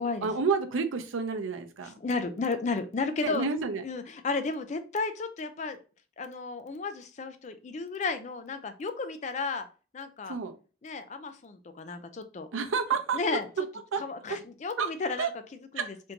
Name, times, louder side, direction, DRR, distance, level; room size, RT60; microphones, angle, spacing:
voice 1, 0.0-1.9 3.2-3.8 10.3-10.5 12.5-13.2 13.9-14.0 14.8-14.9 15.2-15.3 15.8-15.9, right 5 dB, 90° right, 0.5 m, -29 dB
voice 2, 2.0-3.5 3.8-5.8 6.2-9.7 9.9-10.4 10.8-12.5 13.1-13.5 14.0-15.3 15.7-15.9, left 4 dB, 35° left, 0.4 m, -33 dB
3.5 x 2.5 x 2.8 m
head